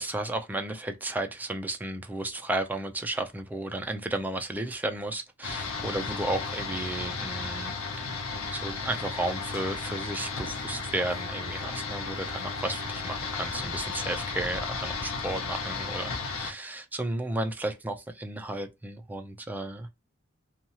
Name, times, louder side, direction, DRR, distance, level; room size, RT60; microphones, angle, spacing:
voice 1, 0.0-19.9, right 2 dB, 10° right, 0.3 m, -33 dB
sound 1, 5.4-16.5, left 4 dB, 75° left, 0.7 m, -34 dB
2.8 x 2.3 x 2.7 m
head